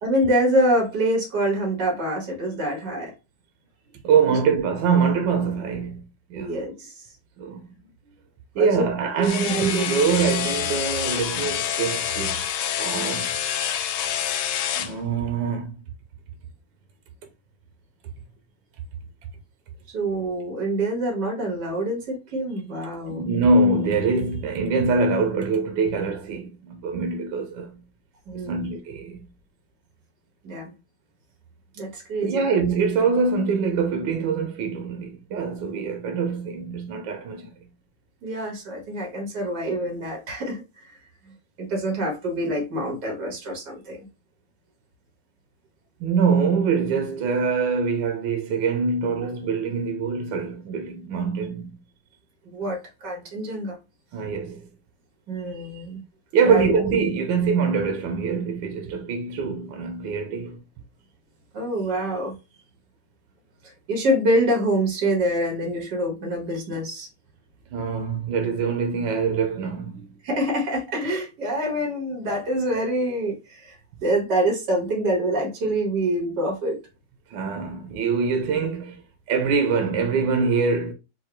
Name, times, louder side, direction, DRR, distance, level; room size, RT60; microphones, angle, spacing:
voice 1, 0.0-3.1 4.2-4.4 6.3-7.1 8.6-8.9 9.2-9.9 19.9-23.2 28.3-28.7 30.4-30.7 31.7-32.4 38.2-41.0 41.2-44.1 52.4-53.8 55.3-56.0 56.4-56.7 61.5-62.3 63.6-67.1 70.2-76.8, right 1 dB, 65° right, 2.2 m, -26 dB
voice 2, 4.0-6.6 7.4-7.7 8.5-13.6 14.8-15.7 23.1-27.8 28.3-29.3 32.2-37.5 46.0-51.7 54.1-54.7 56.3-60.6 67.7-70.1 77.3-79.0 79.3-80.9, right 5 dB, 80° right, 1.4 m, -24 dB
sound 1, 9.2-14.9, left 10 dB, 75° left, 1.2 m, -27 dB
4.6 x 2.2 x 4.5 m
omnidirectional pair, 2.0 m